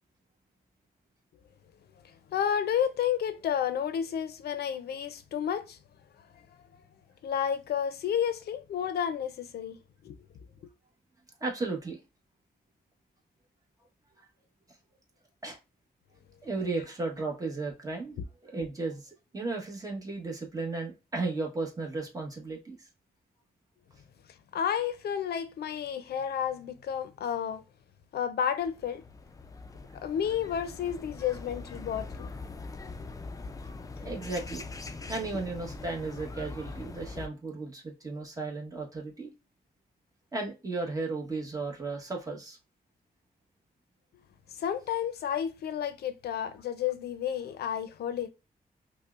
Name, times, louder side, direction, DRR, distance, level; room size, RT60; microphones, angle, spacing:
voice 1, 2.3-5.8 7.2-9.8 10.0-10.2 24.5-27.6 28.1-29.0 30.0-32.3 44.5-48.3, left 9 dB, 85° left, 0.5 m, -31 dB
voice 2, 11.4-12.0 15.4-15.6 16.4-18.2 18.4-22.9 34.0-34.8 35.1-39.3 40.3-42.6, right 3 dB, 20° right, 1.1 m, -35 dB
sound 1, 28.5-37.3, left 3 dB, 20° left, 0.4 m, -42 dB
5.4 x 2.1 x 2.4 m
wide cardioid pair, 110°, 16 cm